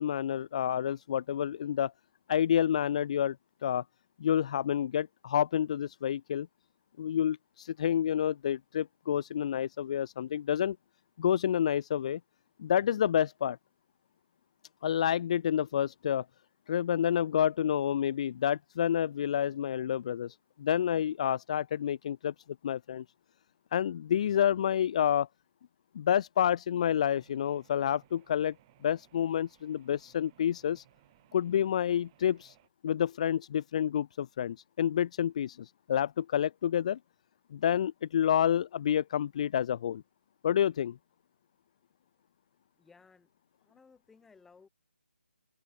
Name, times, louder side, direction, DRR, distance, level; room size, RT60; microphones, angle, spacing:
voice 1, 0.0-1.9 2.3-3.4 3.6-3.8 4.2-6.5 7.0-10.8 11.2-12.2 12.6-13.6 14.8-16.2 16.7-22.3 22.6-23.0 23.7-25.3 25.9-28.5 28.8-30.8 31.3-32.5 32.8-37.0 37.5-40.0 40.4-41.0, left 9 dB, 35° left, 0.7 m, -29 dB
sound 1, 26.8-32.7, right 18 dB, 25° right, 5.3 m, -64 dB
voice 2, 42.8-43.3 43.6-44.7, left 5 dB, 5° left, 6.8 m, -59 dB
figure-of-eight pair, 145°, 7 cm